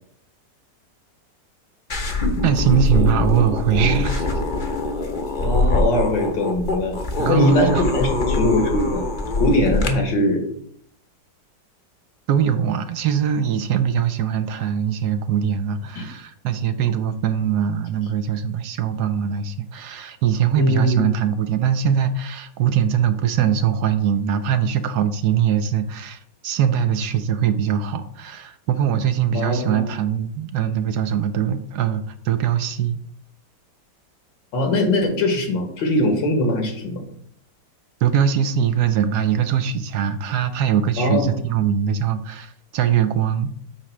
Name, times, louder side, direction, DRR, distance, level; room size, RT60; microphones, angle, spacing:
sound 1, 1.9-9.9, left 2 dB, 40° left, 0.8 m, -23 dB
voice 1, 2.4-4.4 7.2-8.0 12.3-33.0 38.0-43.6, right 8 dB, 70° right, 10 dB, 1.1 m, -22 dB
voice 2, 5.4-7.0 7.3-9.0 9.4-10.4 16.0-16.1 20.6-21.1 29.3-29.9 34.5-37.0 41.0-41.3, left 1 dB, 90° left, 3 dB, 2.3 m, -21 dB
8.7 x 3.1 x 5.9 m, 0.66 s
omnidirectional pair, 1.9 m